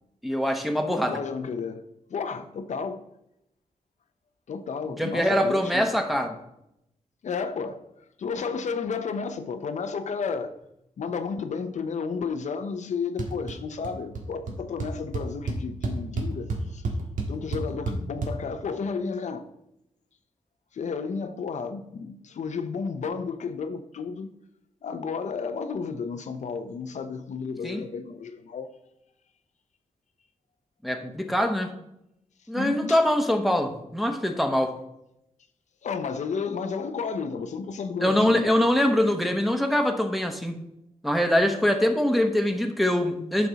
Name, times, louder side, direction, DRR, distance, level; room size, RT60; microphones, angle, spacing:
voice 1, 0.2-1.2 5.0-6.3 27.6-27.8 30.8-31.7 32.5-34.7 38.0-40.6 41.0-43.5, left 1 dB, ahead, 1.0 m, -23 dB
voice 2, 0.8-1.8 2.1-3.1 4.5-5.9 7.2-7.9 8.2-10.5 11.0-16.8 17.3-19.5 20.7-24.3 24.8-28.7 32.5-33.0 35.8-38.6, left 5 dB, 70° left, 0.7 m, -32 dB
sound 1, 13.2-13.6 13.8-14.2 14.5-14.6 14.8-18.3, right 3 dB, 85° right, 1.7 m, -29 dB
10.0 x 6.0 x 4.1 m
wide cardioid pair, 120°, 13 cm